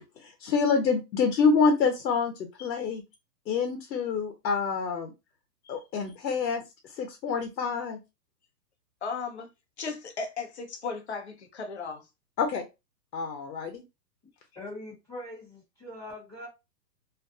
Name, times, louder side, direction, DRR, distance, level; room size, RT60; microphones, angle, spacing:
voice 1, 0.2-2.3 2.6-3.0 3.5-5.1 5.7-6.6 6.9-8.0 12.4-12.6 13.1-13.8, left 5 dB, 80° left, 0.8 m, -26 dB
voice 2, 9.0-9.5 9.8-12.1, left 4 dB, 45° left, 0.5 m, -36 dB
voice 3, 14.5-16.5, left 1 dB, 5° left, 1.0 m, -42 dB
2.5 x 2.2 x 2.5 m
hypercardioid pair, 170°, 50 cm